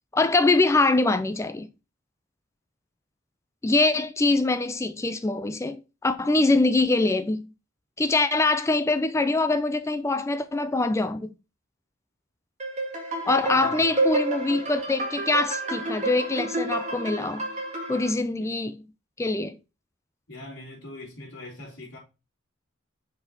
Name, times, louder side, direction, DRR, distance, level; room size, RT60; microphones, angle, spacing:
voice 1, 0.1-1.7 3.6-7.5 8.0-11.3 13.2-17.5 17.9-18.8 19.2-19.6, left 2 dB, 15° left, 0.4 m, -23 dB
sound 1, 12.6-18.1, right 2 dB, 35° right, 2.0 m, -29 dB
voice 2, 13.5-13.9 18.4-18.5 20.3-22.0, left 2 dB, 65° left, 3.2 m, -42 dB
5.4 x 4.8 x 4.0 m
head